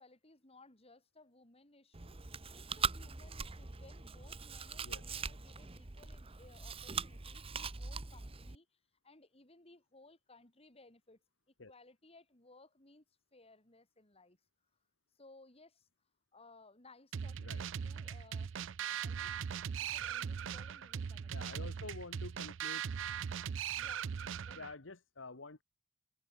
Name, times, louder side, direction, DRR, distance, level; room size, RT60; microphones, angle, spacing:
voice 1, 0.0-13.0 13.3-14.4 15.1-15.9 16.3-18.6 19.0-19.5 19.8-22.0 23.8-24.1 24.5-24.7, left 2 dB, 30° left, 4.0 m, -62 dB
Chewing mastication, 1.9-8.6, right 5 dB, 30° right, 1.0 m, -41 dB
sound 1, 17.1-24.7, right 7 dB, 70° right, 0.4 m, -40 dB
voice 2, 21.3-22.8 24.5-25.6, left 3 dB, 75° left, 1.7 m, -48 dB
head